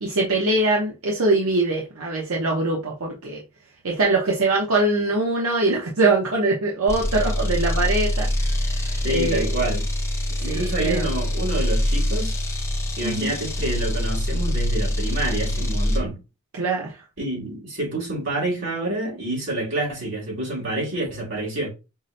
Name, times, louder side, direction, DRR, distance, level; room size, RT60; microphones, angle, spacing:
voice 1, 0.0-3.4 3.8-9.5 10.4-11.0 13.0-13.4 16.5-17.0, right 2 dB, 85° right, 0.8 m, -23 dB
sound 1, 6.9-16.1, left 1 dB, 15° left, 0.6 m, -24 dB
voice 2, 9.0-9.9 10.4-12.4 13.0-16.2 17.2-21.7, right 2 dB, 60° right, 2.2 m, -28 dB
5.5 x 2.1 x 2.6 m
head